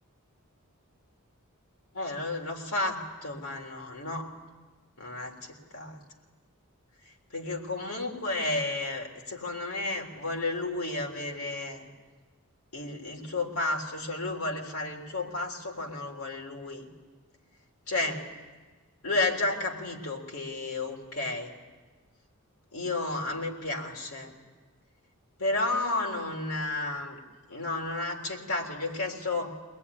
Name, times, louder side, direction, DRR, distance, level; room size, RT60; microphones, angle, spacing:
voice 1, 1.9-4.3 5.0-6.0 7.3-11.9 12.7-16.9 17.9-18.2 19.0-21.5 22.7-24.3 25.4-27.2 27.5-29.5, left 2 dB, 70° left, 1 dB, 3.6 m, -32 dB
22.5 x 20.5 x 9.9 m, 1.3 s
head